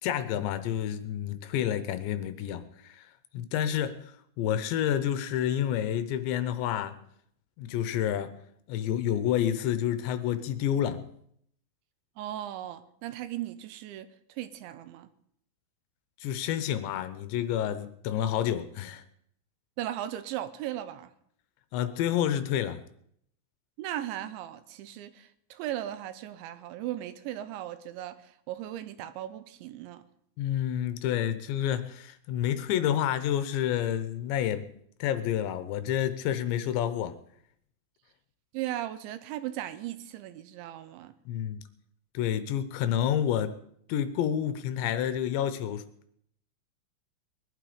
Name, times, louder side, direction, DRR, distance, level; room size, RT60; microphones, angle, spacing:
voice 1, 0.0-3.1 3.3-7.0 7.6-8.3 8.7-11.1 16.2-19.0 21.7-22.8 30.4-34.7 35.0-37.2 41.3-41.6 42.1-43.6 43.9-45.8, left 10 dB, 80° left, 3.0 m, -29 dB
voice 2, 12.2-15.1 19.8-21.1 23.8-30.0 38.5-41.1, right 13 dB, 80° right, 3.1 m, -37 dB
21.0 x 11.5 x 5.1 m
omnidirectional pair, 5.4 m